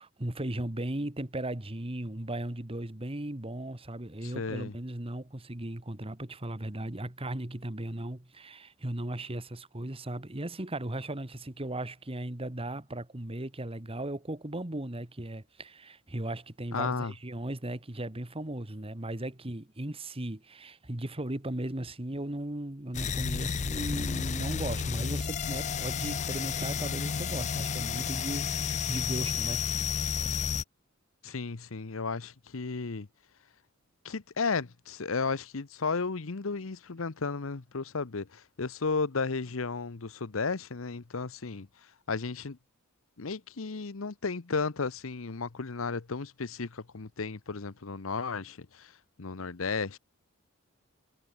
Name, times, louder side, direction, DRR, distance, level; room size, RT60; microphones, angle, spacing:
voice 1, 0.0-29.6, right 1 dB, 30° right, 1.6 m, -37 dB
voice 2, 4.2-4.7 16.7-17.1 31.2-33.1 34.0-41.7 42.1-42.6 43.2-48.9 49.2-50.0, left 4 dB, 80° left, 0.9 m, -34 dB
sound 1, 22.9-30.6, left 6 dB, 35° left, 0.4 m, -31 dB
head